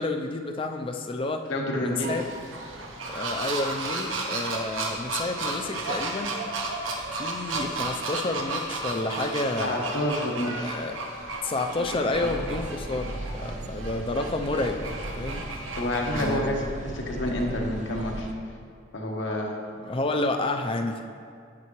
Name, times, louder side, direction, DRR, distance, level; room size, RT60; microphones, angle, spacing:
voice 1, 0.0-1.5 1.8-2.2 3.1-6.4 7.1-9.8 10.6-11.0 11.4-15.4 16.1-16.5 19.8-21.0, left 2 dB, 25° left, 5 dB, 0.4 m, -30 dB
voice 2, 1.5-2.1 9.6-10.7 11.8-11.9 12.2-12.3 15.8-18.3 18.9-19.5, left 1 dB, 70° left, 0 dB, 1.1 m, -28 dB
sound 1, 2.0-16.4, right 2 dB, 80° right, 1.0 m, -33 dB
sound 2, 12.1-18.3, right 2 dB, 35° right, 0.4 m, -37 dB
8.5 x 8.4 x 3.1 m, 2.2 s
head